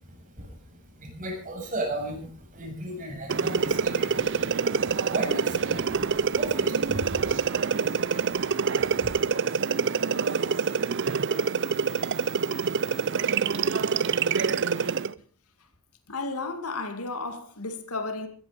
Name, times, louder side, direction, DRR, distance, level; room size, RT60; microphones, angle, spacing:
voice 1, 0.0-9.1, right 1 dB, 35° right, 7.0 m, -37 dB
sound 1, 3.3-15.1, right 5 dB, 55° right, 0.6 m, -26 dB
voice 2, 16.1-18.3, left 3 dB, 85° left, 2.5 m, -33 dB
16.0 x 15.0 x 5.2 m
head